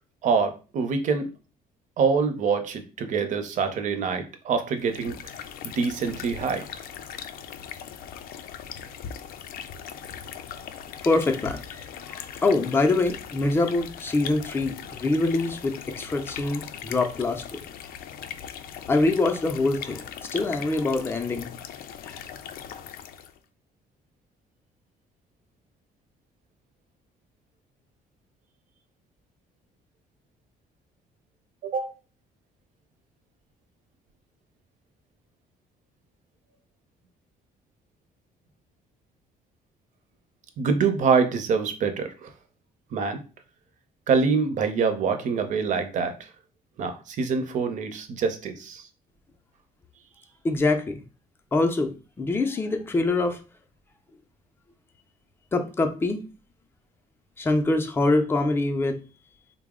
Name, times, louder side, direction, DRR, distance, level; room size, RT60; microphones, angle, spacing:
voice 1, 0.2-1.3 2.0-5.2 5.6-6.7 31.6-31.9 40.6-42.3 42.9-43.2 44.1-46.3 46.8-48.9, right 5 dB, 55° right, 7 dB, 0.6 m, -25 dB
sound 1, 4.8-23.4, left 8 dB, 80° left, 0.4 m, -40 dB
voice 2, 11.0-17.9 18.9-21.6 22.0-22.2 50.4-51.0 51.5-53.4 55.5-56.2 57.4-59.0, left 2 dB, 15° left, 5 dB, 0.4 m, -25 dB
3.9 x 2.0 x 3.6 m, 0.33 s
cardioid pair, 150°, 15 cm